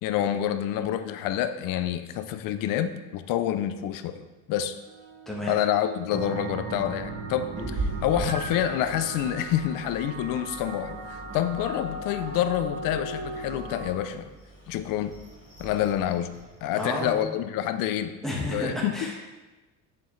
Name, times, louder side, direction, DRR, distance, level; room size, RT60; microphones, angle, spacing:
voice 1, 0.0-4.8 5.5-14.3 14.7-15.1 15.6-16.3 16.6-18.2 18.5-19.1, left 11 dB, 80° left, 10 dB, 0.5 m, -28 dB
sound 1, 4.6-12.1, right 7 dB, 55° right, 1.5 m, -47 dB
sound 2, 6.1-13.9, right 2 dB, 90° right, 1.3 m, -38 dB
Meow, 7.6-17.2, right 2 dB, 25° right, 2.8 m, -40 dB
voice 2, 16.7-17.2 18.2-19.2, left 1 dB, ahead, -4 dB, 1.3 m, -31 dB
7.9 x 7.1 x 3.1 m, 1.1 s
cardioid pair, 180°, 32 cm